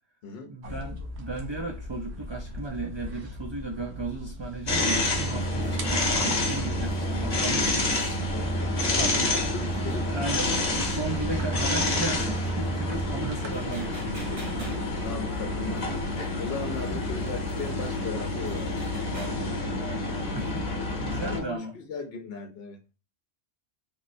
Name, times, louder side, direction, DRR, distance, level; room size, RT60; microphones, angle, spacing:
voice 1, 0.5-8.3 9.0-9.1 10.1-14.4 15.4-15.8 19.1-20.7 21.0-21.7, right 2 dB, 40° right, 1 dB, 0.4 m, -35 dB
sound 1, 0.6-16.1, left 1 dB, 70° right, 1.1 m, -40 dB
sound 2, 4.7-21.4, left 1 dB, 40° left, 0.9 m, -28 dB
sound 3, 5.2-19.4, right 1 dB, 55° right, 1.6 m, -47 dB
voice 2, 8.3-10.1 13.4-13.9 14.4-15.9 16.4-19.2 20.4-20.5 21.2-22.8, left 4 dB, 65° left, 4 dB, 0.8 m, -38 dB
3.6 x 3.1 x 2.5 m, 0.32 s
omnidirectional pair, 1.2 m